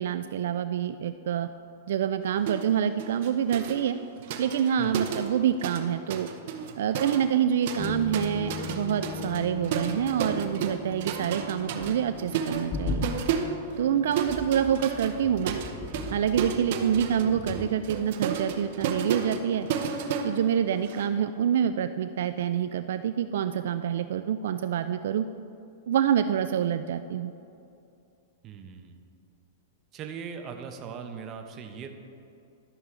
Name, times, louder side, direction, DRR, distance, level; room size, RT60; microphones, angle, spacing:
voice 1, 0.0-1.5 1.9-4.0 4.4-6.3 6.8-13.0 13.8-15.6 16.1-19.7 20.2-25.2 25.9-27.3, right 9 dB, 70° right, 11 dB, 0.3 m, -26 dB
sound 1, 2.5-2.7 3.0-5.8 6.1-21.1, right 7 dB, 55° right, 0.8 m, -33 dB
sound 2, 7.8-19.3 19.6-19.8, left 4 dB, 25° left, 0.7 m, -39 dB
voice 2, 28.4-29.0 29.9-31.9, right 6 dB, 30° right, 5 dB, 0.8 m, -40 dB
13.0 x 6.2 x 3.7 m, 2.6 s
supercardioid pair, 150°, 0 cm